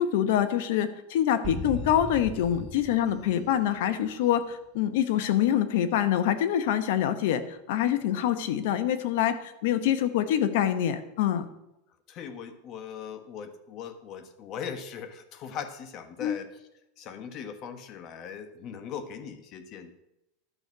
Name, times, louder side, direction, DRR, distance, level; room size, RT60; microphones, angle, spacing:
voice 1, 0.0-11.5 16.2-16.4, left 10 dB, 70° left, 12 dB, 1.0 m, -25 dB
sound 1, 1.4-4.2, right 2 dB, 30° right, 2.3 m, -38 dB
voice 2, 12.1-16.5 17.0-19.9, left 7 dB, 40° left, 10 dB, 1.2 m, -39 dB
11.0 x 6.5 x 6.0 m, 0.88 s
supercardioid pair, 135°, 0 cm